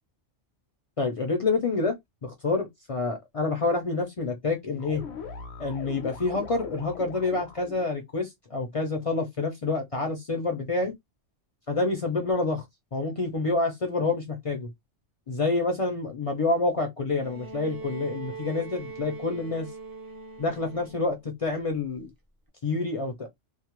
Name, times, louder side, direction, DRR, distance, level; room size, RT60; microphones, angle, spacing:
voice 1, 1.0-2.0 2.2-5.0 5.6-10.9 11.7-12.6 12.9-14.7 15.3-19.7 20.4-22.1 22.6-23.3, left 3 dB, 50° left, 0.4 m, -28 dB
sound 1, 4.8-7.9, left 5 dB, 70° left, 0.8 m, -40 dB
Bowed string instrument, 17.2-21.2 22.5-22.6, right 4 dB, 35° right, 0.3 m, -41 dB
2.3 x 2.0 x 2.9 m
omnidirectional pair, 1.2 m